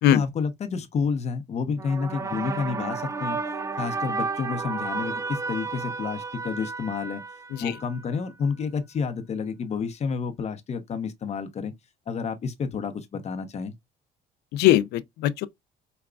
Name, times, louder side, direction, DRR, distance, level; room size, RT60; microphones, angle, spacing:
voice 1, 0.1-3.4 3.8-7.2 7.6-11.7 12.1-13.7, left 5 dB, 40° left, 0.8 m, -30 dB
sound 1, 1.8-8.2, right 4 dB, 20° right, 0.3 m, -32 dB
voice 2, 14.5-15.5, left 13 dB, 80° left, 0.5 m, -21 dB
4.9 x 2.3 x 2.3 m
cardioid pair, 110°, 17 cm